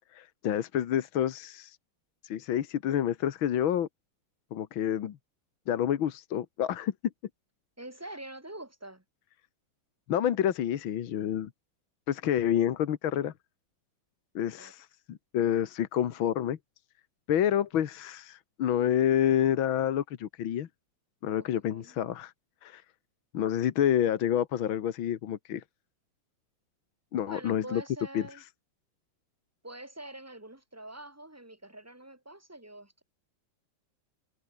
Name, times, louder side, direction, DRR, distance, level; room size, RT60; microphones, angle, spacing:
voice 1, 0.1-1.8 2.2-3.9 4.5-5.2 5.7-6.9 10.1-11.5 12.1-13.3 14.4-16.6 17.3-20.7 21.2-22.3 22.6-22.8 23.3-25.6 27.1-27.8 28.1-28.2, left 10 dB, 80° left, 2.0 m, -28 dB
voice 2, 7.8-9.0 14.4-14.7 21.6-22.0 27.3-28.4 29.6-33.0, right 1 dB, 5° right, 4.3 m, -45 dB
omnidirectional pair, 2.2 m